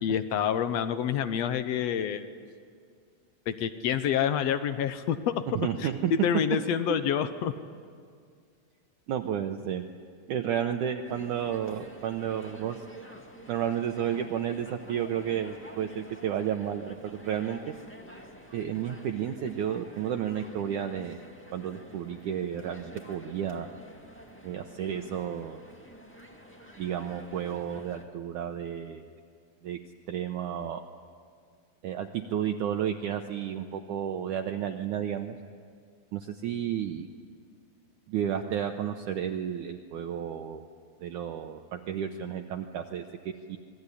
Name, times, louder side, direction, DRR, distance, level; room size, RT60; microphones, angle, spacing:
voice 1, 0.0-2.2 3.5-5.3 5.8-7.5, left 8 dB, 75° left, 11 dB, 1.5 m, -27 dB
voice 2, 5.5-6.1 6.9-7.0 9.1-9.8 10.3-12.8 13.5-17.6 18.5-21.2 21.5-23.8 24.4-25.6 26.8-29.1 29.6-29.8 30.1-30.8 31.8-35.4 36.1-37.1 38.1-40.7 41.0-43.0 43.5-43.6, right 9 dB, 70° right, 4 dB, 2.1 m, -32 dB
sound 1, 11.0-28.0, equal, 10° left, 0.7 m, -49 dB
27.5 x 21.5 x 9.9 m, 2.1 s
omnidirectional pair, 4.3 m